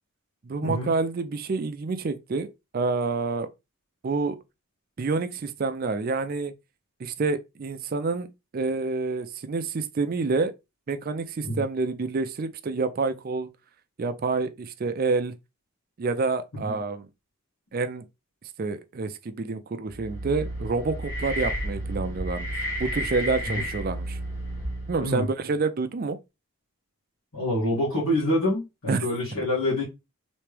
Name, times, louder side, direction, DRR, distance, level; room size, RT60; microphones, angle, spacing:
voice 1, 0.4-3.5 4.0-4.4 5.0-6.5 7.0-8.3 8.5-10.5 10.9-13.5 14.0-15.3 16.0-17.1 17.7-18.0 18.6-22.5 22.8-24.2 24.9-26.2 28.9-29.0, right 4 dB, 40° right, 0.4 m, -28 dB
sound 1, 19.9-25.2, right 1 dB, 15° left, 1.5 m, -32 dB
voice 2, 27.3-29.8, left 1 dB, 80° left, 1.8 m, -26 dB
3.3 x 3.1 x 3.3 m
head